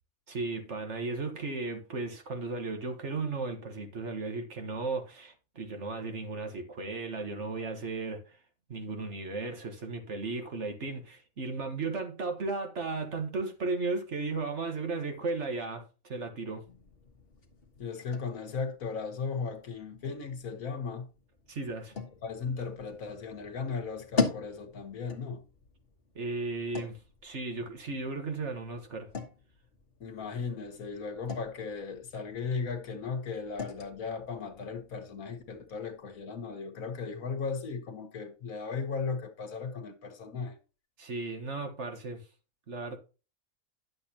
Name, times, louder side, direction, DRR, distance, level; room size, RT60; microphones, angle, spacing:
voice 1, 0.3-8.4 8.7-16.6 21.5-21.9 26.1-29.1 41.0-42.2 42.7-43.0, right 3 dB, 55° right, 1.7 m, -35 dB
sound 1, 16.7-36.2, left 5 dB, 45° left, 1.5 m, -41 dB
voice 2, 17.8-21.1 22.2-25.4 30.0-40.6, left 5 dB, 75° left, 1.7 m, -36 dB
10.5 x 7.5 x 2.9 m
omnidirectional pair, 1.5 m